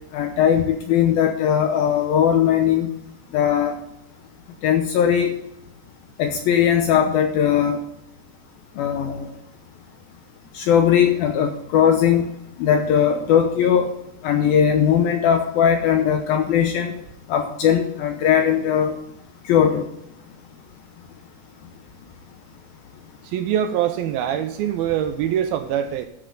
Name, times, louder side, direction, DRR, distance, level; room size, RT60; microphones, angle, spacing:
voice 1, 0.1-2.9 3.3-3.7 4.6-5.3 6.2-7.8 8.8-9.3 10.5-12.3 12.6-13.9 14.2-16.9 17.3-18.9 19.5-19.9, left 8 dB, 75° left, 5 dB, 2.5 m, -19 dB
voice 2, 23.2-26.1, right 10 dB, 80° right, 8 dB, 2.3 m, -23 dB
13.5 x 7.9 x 3.7 m, 0.81 s
omnidirectional pair, 4.7 m